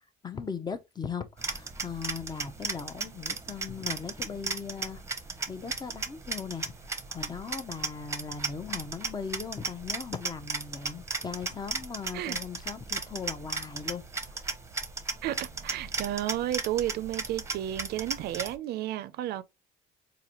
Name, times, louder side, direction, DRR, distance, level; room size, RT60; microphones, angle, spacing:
voice 1, 0.0-5.2 5.5-14.0 14.3-14.4, left 6 dB, 25° left, 0.6 m, -39 dB
sound 1, 1.4-18.5, right 4 dB, 15° right, 0.7 m, -36 dB
voice 2, 15.2-19.4, right 12 dB, 70° right, 0.4 m, -32 dB
4.0 x 2.6 x 2.9 m
cardioid pair, 110°, 17 cm